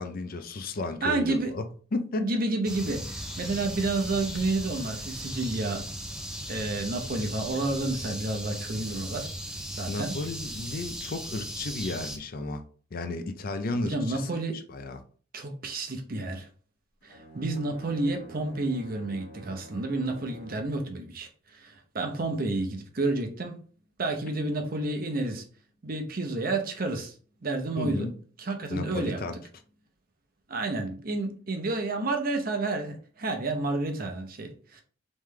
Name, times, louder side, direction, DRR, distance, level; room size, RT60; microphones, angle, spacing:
voice 1, 0.0-2.3 9.9-12.6 12.9-15.0 27.8-28.1 28.7-29.4, left 2 dB, 50° left, 0.5 m, -33 dB
voice 2, 1.0-1.5 2.2-5.9 6.5-9.3 9.7-10.1 13.8-14.6 15.3-16.5 17.0-23.6 24.0-25.4 25.8-27.1 27.4-28.1 28.4-29.2 30.5-34.8, right 2 dB, 50° right, 0.8 m, -30 dB
sound 1, 2.6-12.2, equal, 5° right, 0.6 m, -37 dB
Bowed string instrument, 17.0-20.9, right 1 dB, 65° left, 1.7 m, -48 dB
3.7 x 3.2 x 3.2 m
head